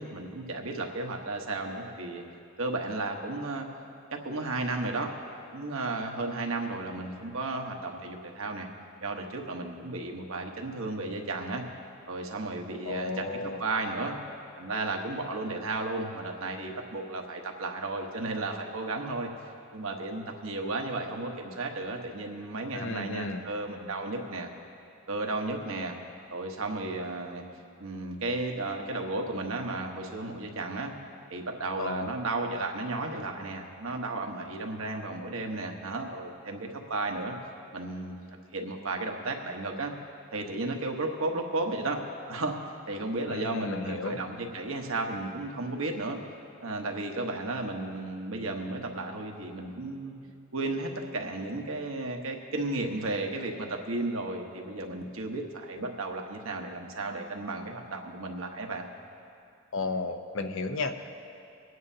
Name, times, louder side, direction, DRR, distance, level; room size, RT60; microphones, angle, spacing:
voice 1, 0.0-2.2 2.6-3.7 4.1-5.1 5.5-8.7 9.0-11.6 12.1-14.2 14.6-19.3 19.7-24.5 25.1-26.0 26.3-27.4 27.8-30.9 31.3-37.3 37.7-38.2 38.5-39.9 40.3-42.0 42.3-42.5 42.9-46.2 46.6-50.1 50.5-58.9, right 2 dB, 75° right, 2 dB, 1.2 m, -34 dB
voice 2, 12.8-13.6 22.7-23.4 31.8-32.1 32.5-32.6 43.3-44.2 59.7-61.1, left 3 dB, 65° left, 7 dB, 0.7 m, -33 dB
25.5 x 9.4 x 2.8 m, 2.5 s
head